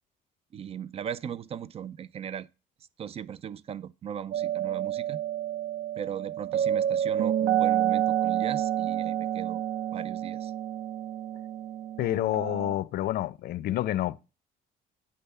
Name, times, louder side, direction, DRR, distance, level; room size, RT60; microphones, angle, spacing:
voice 1, 0.5-2.5 3.0-5.2 6.0-9.6 9.9-10.5, right 8 dB, 35° right, 0.4 m, -38 dB
sound 1, 4.3-12.8, right 11 dB, 80° right, 0.6 m, -29 dB
voice 2, 12.0-14.2, left 14 dB, 65° left, 0.4 m, -28 dB
8.6 x 3.4 x 5.5 m
cardioid pair, 110°, 17 cm